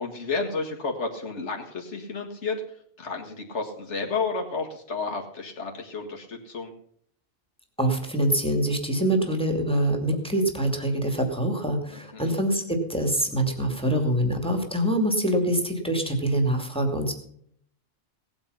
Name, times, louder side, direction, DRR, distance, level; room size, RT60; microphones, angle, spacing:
voice 1, 0.0-2.6 3.0-6.7 11.9-12.3, left 4 dB, 90° left, 0 dB, 2.2 m, -31 dB
voice 2, 7.8-17.1, right 1 dB, 5° left, 3 dB, 2.5 m, -25 dB
18.0 x 8.9 x 5.6 m, 0.65 s
omnidirectional pair, 1.2 m